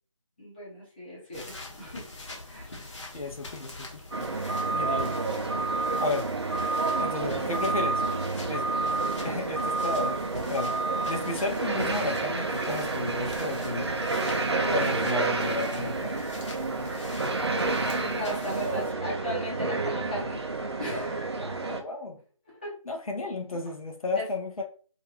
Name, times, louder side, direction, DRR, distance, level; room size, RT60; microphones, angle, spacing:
voice 1, 0.4-2.1 2.4-2.9 17.4-20.4 20.8-21.4 22.5-22.7 24.1-24.2, left 1 dB, 15° left, -8 dB, 0.7 m, -37 dB
sound 1, 1.3-18.9, left 2 dB, 60° left, 0.9 m, -44 dB
voice 2, 3.1-4.0 4.7-5.2 6.0-6.3 7.0-8.0 8.5-8.6 9.2-10.2 10.5-10.7 11.1-13.9 14.7-16.1 21.5-22.2 22.8-24.6, left 3 dB, 85° left, 3 dB, 0.7 m, -33 dB
sound 2, 4.1-21.8, right 3 dB, 50° right, 0.4 m, -29 dB
2.5 x 2.2 x 2.8 m, 0.41 s
figure-of-eight pair, 170°, 18 cm